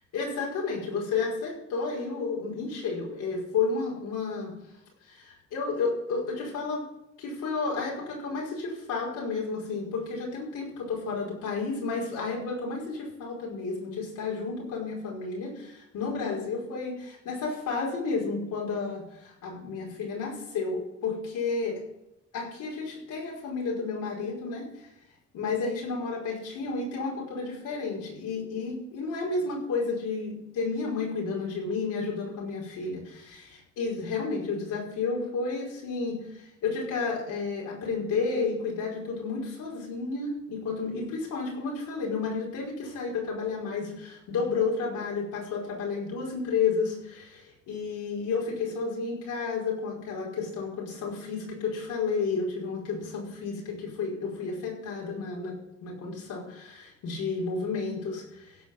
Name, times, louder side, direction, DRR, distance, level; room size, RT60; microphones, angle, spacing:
voice 1, 0.1-4.5 5.1-6.9 7.2-21.8 22.3-24.7 25.3-58.6, left 4 dB, 85° left, -2 dB, 5.2 m, -31 dB
16.0 x 6.0 x 7.5 m, 0.85 s
cardioid pair, 90°, 30 cm